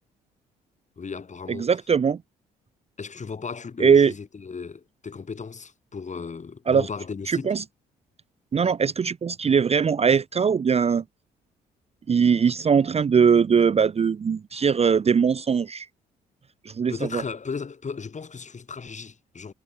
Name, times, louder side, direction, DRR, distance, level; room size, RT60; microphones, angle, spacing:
voice 1, 1.0-1.7 3.0-7.6 16.9-19.5, left 5 dB, 35° left, 4.4 m, -35 dB
voice 2, 1.5-2.2 3.8-4.1 6.7-6.9 7.3-7.6 8.5-11.0 12.1-15.9 16.7-17.2, right 6 dB, 30° right, 0.6 m, -21 dB
hypercardioid pair, 50°, 20 cm